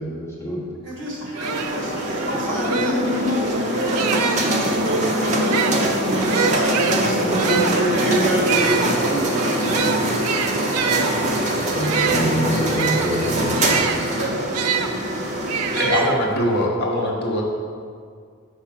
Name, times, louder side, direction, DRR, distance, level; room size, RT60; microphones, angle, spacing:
voice 1, 0.0-0.7 11.6-13.7, equal, 10° left, -5 dB, 1.0 m, -25 dB
voice 2, 0.8-10.2 10.8-11.2 14.2-14.7 15.3-15.4, equal, 55° right, -3 dB, 1.4 m, -26 dB
sound 1, 1.0-1.1 1.3-4.6 5.3-14.9 15.5-16.6, right 6 dB, 90° right, 0.4 m, -26 dB
sound 2, 1.4-15.8, right 1 dB, 35° right, 0.6 m, -23 dB
voice 3, 15.8-17.4, left 1 dB, 45° left, -2 dB, 0.9 m, -21 dB
4.8 x 4.7 x 5.8 m, 2.1 s
head